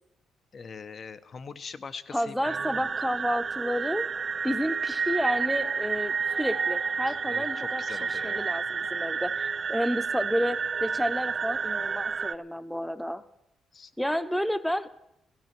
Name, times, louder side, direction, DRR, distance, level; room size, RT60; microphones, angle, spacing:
voice 1, 0.5-2.9 7.1-8.5 13.7-13.9, left 5 dB, 45° left, 14 dB, 0.9 m, -43 dB
voice 2, 2.1-4.1 4.4-13.2 14.0-14.9, equal, ahead, 11 dB, 0.9 m, -30 dB
sound 1, 2.4-12.3, right 5 dB, 40° right, 0.5 m, -30 dB
16.0 x 14.5 x 6.1 m, 0.84 s
cardioid pair, 90°, 0 cm